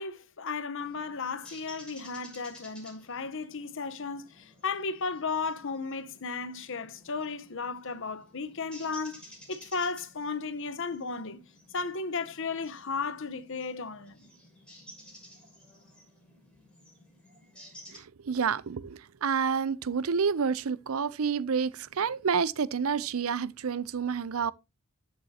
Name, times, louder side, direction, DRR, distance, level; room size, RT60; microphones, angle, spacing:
voice 1, 0.0-11.4 11.7-14.3, left 4 dB, 65° left, 1.0 m, -35 dB
sound 1, 0.8-18.0, equal, 5° left, 6.0 m, -54 dB
voice 2, 17.9-24.5, right 6 dB, 80° right, 0.6 m, -29 dB
13.5 x 8.1 x 2.8 m
head